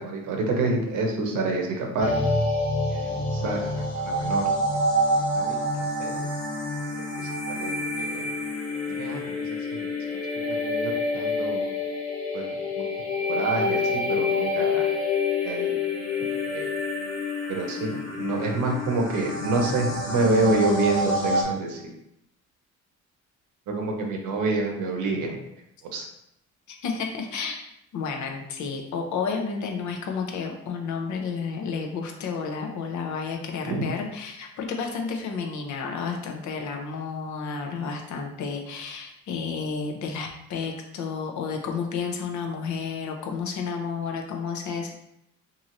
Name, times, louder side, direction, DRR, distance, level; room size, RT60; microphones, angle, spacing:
voice 1, 0.0-2.1 2.9-4.5 5.2-6.3 6.9-8.3 8.9-9.4 9.7-9.9 10.6-11.7 12.3-12.5 13.3-14.9 15.4-15.7 16.5-16.7 17.5-21.8 23.7-25.4 25.9-26.0 33.7-33.9, right 2 dB, 85° right, 1 dB, 0.7 m, -28 dB
sound 1, 2.0-21.4, left 2 dB, 55° left, 1.2 m, -27 dB
voice 2, 26.7-27.6 27.9-44.9, left 5 dB, 70° left, 2 dB, 0.7 m, -31 dB
2.9 x 2.7 x 2.6 m, 0.78 s
cardioid pair, 90°, 30 cm